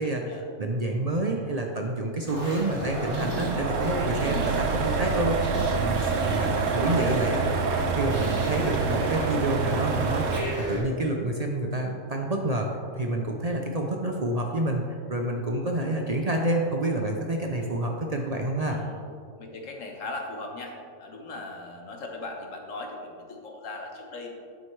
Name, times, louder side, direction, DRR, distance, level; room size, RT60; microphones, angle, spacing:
voice 1, 0.0-0.4 6.4-7.1 18.7-19.0 19.4-24.3, left 2 dB, 90° left, 2 dB, 1.5 m, -39 dB
voice 2, 0.6-7.6 7.9-14.8 15.1-18.8, right 1 dB, 45° right, 1 dB, 0.5 m, -28 dB
sound 1, 2.2-10.8, right 1 dB, 65° right, 2.9 m, -35 dB
sound 2, 2.5-10.4, right 4 dB, 85° right, 1.1 m, -27 dB
9.2 x 7.9 x 3.2 m, 2.3 s
omnidirectional pair, 1.3 m